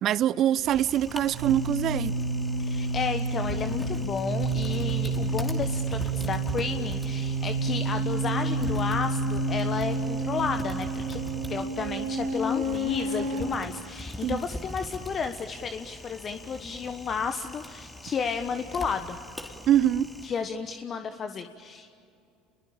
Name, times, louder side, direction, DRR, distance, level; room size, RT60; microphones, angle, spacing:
voice 1, 0.0-2.1 14.2-14.4 19.7-20.1, right 11 dB, 50° right, 20 dB, 0.7 m, -24 dB
sound 1, 0.6-13.4, right 2 dB, 70° right, 6.0 m, -29 dB
Typing, 0.7-20.3, left 1 dB, 10° left, 3.0 m, -41 dB
voice 2, 2.6-11.2 11.5-19.2 20.2-21.9, left 6 dB, 40° left, 7 dB, 1.3 m, -32 dB
30.0 x 22.0 x 8.9 m, 2.6 s
hypercardioid pair, 75°, 0 cm